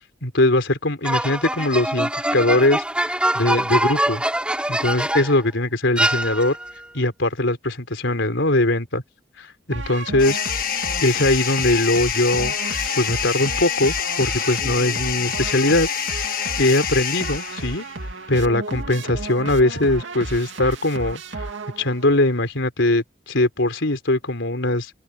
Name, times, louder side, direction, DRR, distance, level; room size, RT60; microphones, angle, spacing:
voice 1, 0.2-4.2 4.7-6.6 6.9-9.0 9.4-10.4 11.0-15.9 16.2-16.3 16.6-17.8 18.3-21.5 21.8-24.9, left 2 dB, 90° left, 4.2 m, -21 dB
sound 1, 1.0-5.4 6.0-6.7, right 1 dB, 5° right, 6.4 m, -23 dB
sound 2, 9.7-22.1, right 2 dB, 85° right, 2.5 m, -33 dB
sound 3, 10.2-17.9, left 8 dB, 45° left, 1.7 m, -26 dB
open air
head